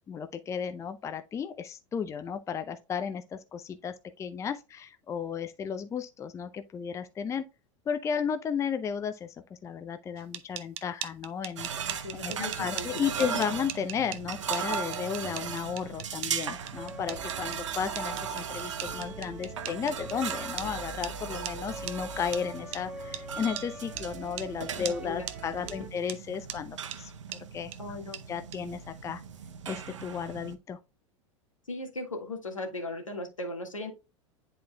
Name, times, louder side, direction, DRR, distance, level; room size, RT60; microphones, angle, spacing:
voice 1, 0.1-7.4 7.9-9.3 9.6-11.7 12.2-12.3 12.6-27.7 28.3-29.2 29.7-30.8, left 7 dB, 20° left, 0.5 m, -34 dB
sound 1, 10.2-20.7 21.0-21.1 21.4-21.5 21.9-22.0 22.3-22.4 22.7-22.8 23.1-23.2 23.6-23.7 24.0-24.1 24.4-24.5 24.8-25.0 25.3-25.4 25.7-25.8 26.1-26.2 26.5-26.6 26.9-27.0 27.3-27.4 27.7-27.8 28.1-28.2 28.5-28.6, right 12 dB, 35° right, 0.7 m, -38 dB
sound 2, 11.6-30.5, right 7 dB, 70° right, 0.8 m, -38 dB
voice 2, 11.9-13.3 24.8-25.3 27.8-28.2 31.7-33.9, left 2 dB, 80° left, 1.8 m, -38 dB
sound 3, 16.8-25.9, right 2 dB, 5° right, 1.7 m, -44 dB
10.0 x 4.4 x 2.3 m
figure-of-eight pair, 85°, 16 cm